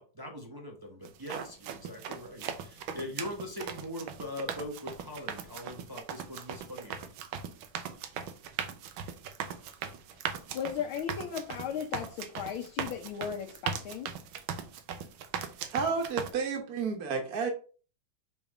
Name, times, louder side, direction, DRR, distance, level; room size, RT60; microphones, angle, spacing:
voice 1, 0.0-7.0, left 1 dB, 25° right, 1 dB, 0.5 m, -41 dB
sound 1, 1.1-16.3, right 7 dB, 85° right, 1.6 m, -39 dB
voice 2, 10.5-14.1, left 8 dB, 90° left, 2 dB, 1.7 m, -36 dB
voice 3, 15.7-17.5, right 5 dB, 50° right, 3 dB, 1.5 m, -31 dB
5.7 x 3.6 x 4.8 m, 0.38 s
omnidirectional pair, 2.2 m